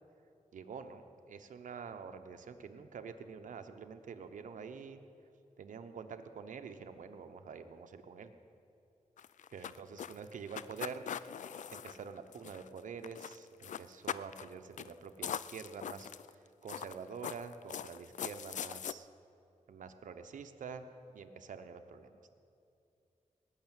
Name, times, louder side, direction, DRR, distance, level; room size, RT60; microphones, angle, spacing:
voice 1, 0.5-5.0 5.6-8.3 9.5-11.0 11.4-19.1 19.7-20.8 21.1-22.2, right 6 dB, 90° right, 7 dB, 0.9 m, -47 dB
sound 1, 9.2-12.8 13.0-13.4 13.6-14.5 14.8-14.9 15.2-16.3 16.7-18.9, left 8 dB, 75° left, 0.4 m, -41 dB
19.5 x 6.6 x 9.0 m, 2.6 s
cardioid pair, 70°, 13 cm